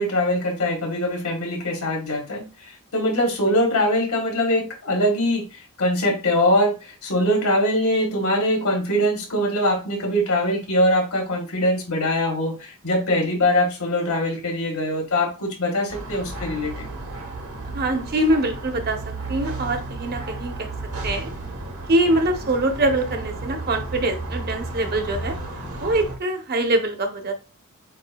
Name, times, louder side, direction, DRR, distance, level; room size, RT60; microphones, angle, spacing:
voice 1, 0.0-16.9, left 1 dB, 80° left, 1 dB, 1.7 m, -22 dB
sound 1, 15.9-26.2, right 2 dB, 70° right, 1.2 m, -33 dB
voice 2, 17.7-20.7 21.0-21.3 21.9-25.4 25.8-27.3, right 1 dB, 45° right, 5 dB, 0.8 m, -23 dB
7.5 x 2.6 x 2.3 m, 0.30 s
head